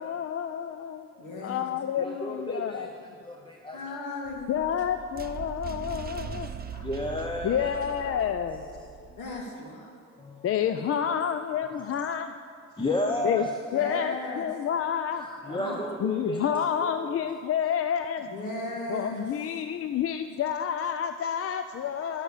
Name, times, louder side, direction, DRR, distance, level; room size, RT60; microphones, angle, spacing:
voice 1, 0.0-1.1 1.4-2.9 4.5-6.5 7.4-8.6 10.4-12.3 13.2-13.4 13.7-15.2 16.0-18.3 18.9-22.2, left 8 dB, 50° left, 9 dB, 0.5 m, -29 dB
voice 2, 1.2-1.7 3.7-4.7 6.2-6.4 6.7-6.9 9.2-9.9 13.7-14.5 15.5-15.8 18.2-19.3, left 2 dB, 80° left, 0 dB, 2.2 m, -36 dB
voice 3, 1.9-4.0 6.8-9.1 10.2-10.9 11.6-12.1 12.8-13.6 15.2-17.2 21.8-21.9, left 1 dB, 15° left, 2 dB, 0.7 m, -34 dB
sound 1, 4.3-9.4, right 7 dB, 30° right, 0.6 m, -40 dB
11.0 x 7.0 x 6.6 m, 2.3 s
cardioid pair, 90°, 30 cm